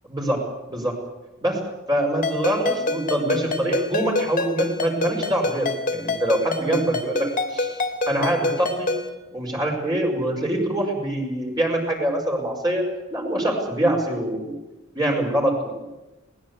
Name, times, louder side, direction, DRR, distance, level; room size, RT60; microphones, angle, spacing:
voice 1, 0.1-0.4 0.7-1.0 1.4-1.6 1.9-7.8 8.1-8.9 9.3-12.8 13.1-14.5 15.0-15.8, right 1 dB, 20° right, -1 dB, 5.6 m, -24 dB
Ringtone, 2.2-9.1, left 3 dB, 45° left, 2.8 m, -27 dB
22.0 x 19.5 x 8.3 m, 1.0 s
head